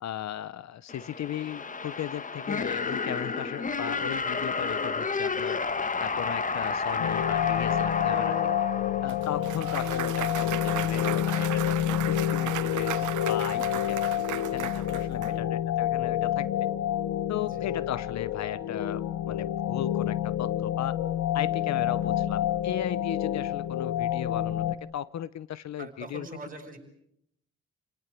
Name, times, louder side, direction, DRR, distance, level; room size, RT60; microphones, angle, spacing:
voice 1, 0.0-5.6 6.0-8.5 9.0-16.5 17.3-21.0 21.3-26.3, left 11 dB, 65° left, 18 dB, 0.9 m, -36 dB
sound 1, 0.9-9.8, left 4 dB, 25° left, 1.3 m, -31 dB
sound 2, 7.0-24.8, left 11 dB, 85° left, 1.2 m, -28 dB
Clapping / Cheering / Applause, 9.1-15.3, right 13 dB, 80° right, 1.2 m, -36 dB
voice 2, 12.9-13.3 15.2-15.5 17.5-17.7 21.9-22.3 25.8-26.8, right 3 dB, 30° right, 3 dB, 6.8 m, -46 dB
29.0 x 19.0 x 8.4 m, 0.75 s
cardioid pair, 90°, 30 cm